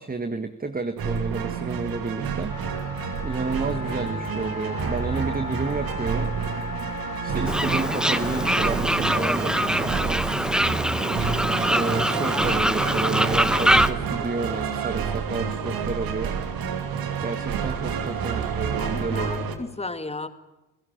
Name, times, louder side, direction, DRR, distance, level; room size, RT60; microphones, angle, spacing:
voice 1, 0.0-2.6 3.2-6.3 7.2-10.5 11.6-16.4 16.8-16.9 17.2-19.5, right 3 dB, 25° right, 9 dB, 1.7 m, -31 dB
sound 1, 1.0-19.5, right 6 dB, 65° right, 2.8 m, -29 dB
Wind instrument woodwind instrument, 2.5-8.8, left 4 dB, 50° left, 4.4 m, -37 dB
Fowl, 7.5-13.9, equal, ahead, 1.1 m, -23 dB
voice 2, 18.8-20.3, left 2 dB, 15° left, 10 dB, 2.2 m, -34 dB
28.0 x 17.0 x 7.4 m, 0.99 s
hypercardioid pair, 60°, 38 cm